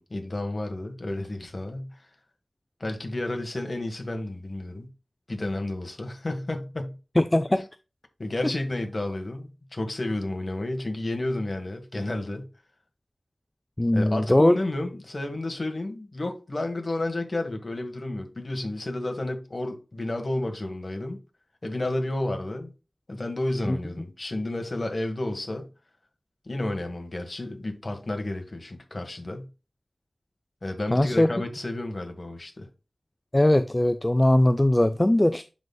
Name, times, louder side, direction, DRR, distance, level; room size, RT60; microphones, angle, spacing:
voice 1, 0.0-2.0 2.8-4.9 5.3-7.0 8.2-12.5 13.9-21.2 21.6-22.7 23.1-25.7 26.5-29.5 30.6-32.7, left 2 dB, 45° left, 1.6 m, -31 dB
voice 2, 7.2-7.6 13.8-14.6 23.7-23.8 30.9-31.3 33.3-35.4, left 1 dB, 20° left, 0.4 m, -20 dB
11.0 x 4.0 x 2.3 m
wide cardioid pair, 70°, 0 cm